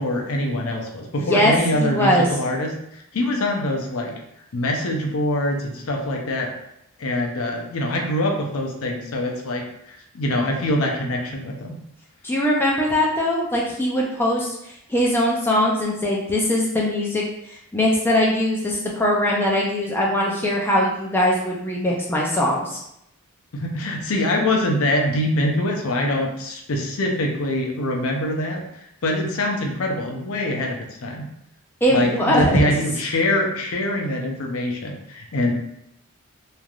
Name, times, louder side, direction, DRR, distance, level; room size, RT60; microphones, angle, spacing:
voice 1, 0.0-2.7 3.1-4.1 4.5-6.5 7.0-11.8 23.5-31.3 31.9-35.5, left 1 dB, 70° left, 1 dB, 0.5 m, -24 dB
voice 2, 1.2-2.3 12.2-17.2 17.5-22.8 31.8-32.5, left 1 dB, 10° left, -3 dB, 0.4 m, -21 dB
3.2 x 2.5 x 2.3 m, 0.77 s
head